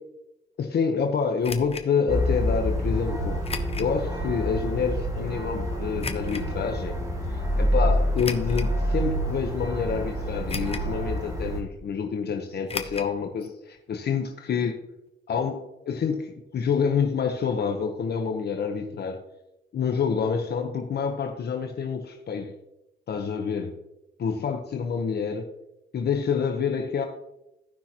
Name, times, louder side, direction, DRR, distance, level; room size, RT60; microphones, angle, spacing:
voice 1, 0.6-3.4 3.8-6.9 7.3-14.8 15.3-19.2 19.7-22.5 23.1-23.8 24.2-25.5 25.9-27.1, left 6 dB, 55° left, 4 dB, 1.0 m, -27 dB
sound 1, 1.4-1.9 3.4-3.9 4.5-4.6 6.0-6.4 8.1-8.7 9.4-9.5 10.5-11.0 11.2-11.3 12.7-13.1 13.4-13.5 13.8-13.9, left 4 dB, 30° left, 0.9 m, -35 dB
sound 2, 2.1-11.6, equal, 15° right, 2.4 m, -27 dB
16.0 x 5.7 x 3.0 m, 0.90 s
cardioid pair, 90°, 20 cm